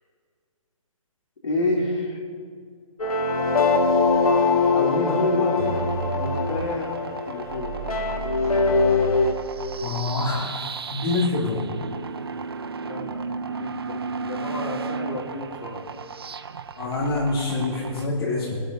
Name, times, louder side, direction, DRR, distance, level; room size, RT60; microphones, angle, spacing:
voice 1, 1.4-2.2 4.7-5.6 6.1-6.9 7.3-7.8 12.8-15.8, left 2 dB, 60° left, -2 dB, 3.6 m, -29 dB
sound 1, 3.0-9.3, left 4 dB, 85° left, 1.7 m, -22 dB
sound 2, 5.6-18.1, right 5 dB, 45° right, 0.5 m, -34 dB
voice 2, 9.8-11.7 16.8-18.6, left 2 dB, 40° left, -7 dB, 2.7 m, -26 dB
24.5 x 8.5 x 3.9 m, 2.1 s
hypercardioid pair, 180°, 18 cm